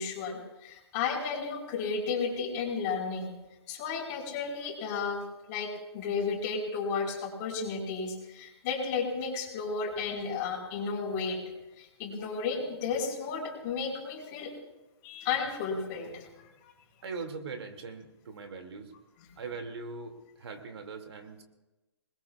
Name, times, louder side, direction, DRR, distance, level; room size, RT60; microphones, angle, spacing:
voice 1, 0.0-3.3 3.7-11.4 11.8-14.5 15.0-16.3 16.6-16.7, left 5 dB, 35° left, 0 dB, 4.5 m, -33 dB
voice 2, 17.0-18.9 19.4-21.4, right 4 dB, 70° right, 5 dB, 2.4 m, -41 dB
27.5 x 20.5 x 2.4 m, 1.1 s
hypercardioid pair, 135°, 14 cm